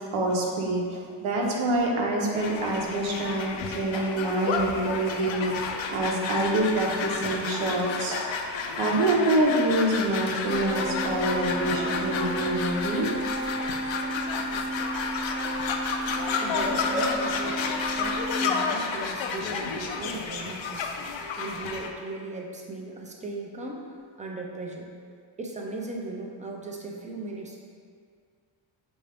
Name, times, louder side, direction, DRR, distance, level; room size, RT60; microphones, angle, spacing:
voice 1, 0.0-8.2 8.8-13.1 16.9-17.0, right 1 dB, 80° right, -1 dB, 0.9 m, -26 dB
sound 1, 2.3-21.9, left 5 dB, 75° left, 0.5 m, -31 dB
sound 2, 10.5-18.4, right 1 dB, 35° left, 0.6 m, -33 dB
voice 2, 16.4-20.9 21.4-23.8 24.2-24.9 25.4-27.6, right 2 dB, 20° right, 0 dB, 0.3 m, -37 dB
5.5 x 2.6 x 3.3 m, 2.1 s
cardioid pair, 140°, 47 cm